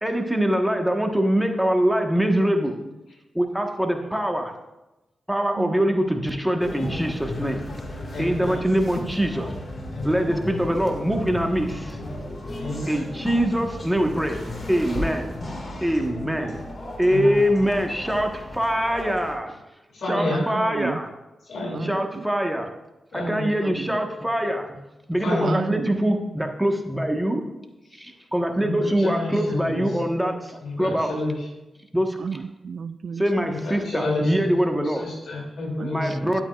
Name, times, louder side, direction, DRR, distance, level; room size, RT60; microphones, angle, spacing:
voice 1, 0.0-2.7 3.3-4.5 5.3-7.6 8.2-9.5 10.0-12.0 12.9-14.4 14.7-15.3 15.8-16.5 17.0-19.5 20.1-21.1 21.8-22.7 23.1-24.8 25.1-27.4 28.0-31.2 31.9-32.2 33.2-35.1 35.9-36.4, equal, 5° right, 3 dB, 1.3 m, -23 dB
voice 2, 5.6-5.9 12.7-13.1 16.3-16.5 20.3-21.0 21.7-22.2 23.6-24.0 25.4-26.0 32.2-33.5 35.8-36.4, right 5 dB, 65° right, 15 dB, 0.3 m, -33 dB
sound 1, 6.6-19.4, left 1 dB, 50° left, 2.0 m, -35 dB
voice 3, 8.1-8.6 9.9-10.4 12.6-13.0 17.1-17.4 19.9-20.6 21.5-21.9 23.1-23.5 25.2-25.6 28.6-29.8 30.6-31.5 33.5-34.4 34.7-36.2, left 2 dB, 75° left, -1 dB, 2.8 m, -29 dB
11.5 x 8.8 x 2.5 m, 0.99 s
cardioid pair, 50°, 0 cm